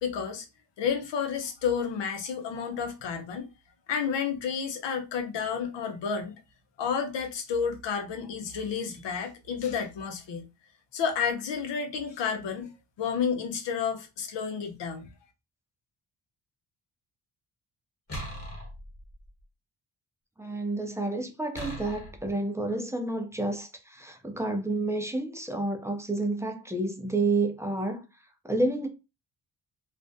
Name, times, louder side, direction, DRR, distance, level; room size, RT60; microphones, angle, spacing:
voice 1, 0.0-0.5 0.8-3.5 3.9-6.3 6.8-10.5 10.9-12.7 13.0-15.1, left 6 dB, 75° left, 0.7 m, -31 dB
sound 1, 18.1-19.3 21.5-22.3, equal, 35° left, 1.3 m, -39 dB
voice 2, 20.4-28.0 28.4-28.9, right 2 dB, 5° right, 0.3 m, -30 dB
2.4 x 2.0 x 2.6 m
wide cardioid pair, 115°, 43 cm